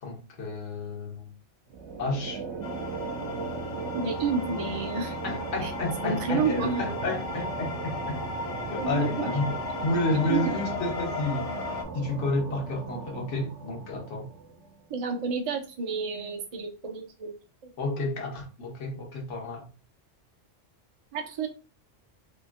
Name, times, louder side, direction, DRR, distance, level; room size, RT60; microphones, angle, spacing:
voice 1, 0.0-1.3 2.0-2.4 5.2-8.2 8.7-11.5 11.9-14.3 17.8-19.6, left 2 dB, 85° left, 1.2 m, -31 dB
sound 1, 1.7-14.8, right 4 dB, 75° right, 0.9 m, -38 dB
sound 2, 2.6-11.8, left 3 dB, 50° left, 0.4 m, -36 dB
voice 2, 3.9-5.1 5.6-5.7 6.0-6.8 8.8-9.4 10.2-10.6 14.9-17.3 17.6-17.7 21.1-21.5, right 5 dB, 45° right, 0.5 m, -30 dB
2.9 x 2.5 x 2.4 m
omnidirectional pair, 1.2 m